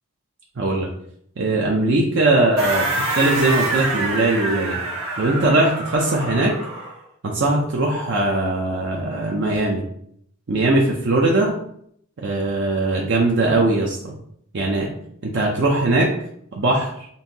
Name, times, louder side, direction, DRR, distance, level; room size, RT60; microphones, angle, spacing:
voice 1, 0.6-0.9 1.4-4.8 5.2-6.5 7.2-9.8 10.5-11.5 12.2-14.1 14.5-14.9 15.2-16.1 16.6-16.9, right 2 dB, 60° right, -1 dB, 0.6 m, -20 dB
sound 1, 2.6-7.0, right 2 dB, 85° right, 1.3 m, -26 dB
5.5 x 2.6 x 2.7 m, 0.69 s
head